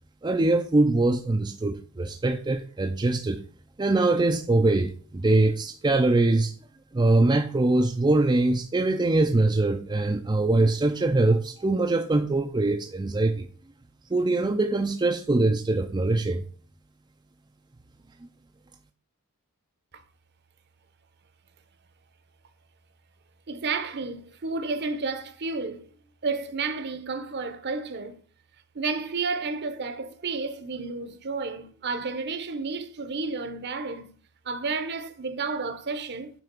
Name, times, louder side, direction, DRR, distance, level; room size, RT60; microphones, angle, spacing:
voice 1, 0.2-3.4 3.8-6.5 6.9-13.5 14.1-16.4, right 2 dB, 20° right, 0.4 m, -23 dB
voice 2, 23.5-25.9 26.2-28.2 28.7-34.1 34.4-36.4, right 4 dB, 50° right, 0.8 m, -31 dB
9.1 x 3.4 x 5.1 m
head